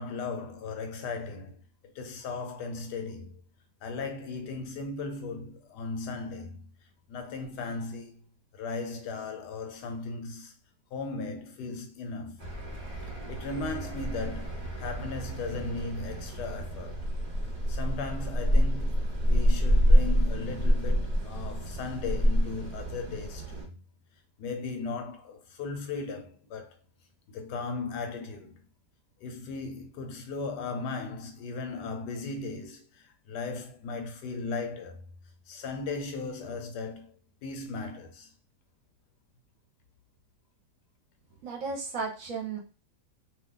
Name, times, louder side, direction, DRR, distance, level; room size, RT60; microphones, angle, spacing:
voice 1, 0.0-1.6 1.9-3.4 3.8-6.7 7.1-8.2 8.5-10.5 10.9-12.5 13.0-17.0 17.7-23.8 24.4-26.8 27.3-28.6 29.2-35.0 35.5-37.2 37.4-38.3, left 4 dB, 80° left, 1.3 m, -37 dB
sound 1, 12.4-23.6, equal, 30° right, 1.1 m, -27 dB
voice 2, 41.4-42.6, right 4 dB, 65° right, 1.0 m, -34 dB
2.8 x 2.3 x 3.7 m
omnidirectional pair, 1.8 m